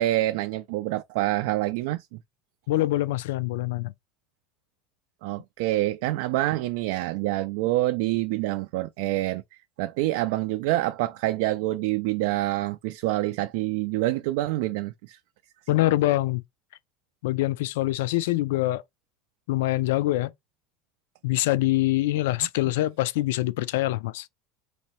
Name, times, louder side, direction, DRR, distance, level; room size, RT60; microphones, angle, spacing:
voice 1, 0.0-2.2 5.2-15.2, right 16 dB, 65° right, 0.3 m, -27 dB
voice 2, 2.7-3.9 15.7-16.4 17.2-18.8 19.5-20.3 21.2-24.3, left 16 dB, 85° left, 0.4 m, -24 dB
4.0 x 2.7 x 3.0 m
cardioid pair, 170°, 0 cm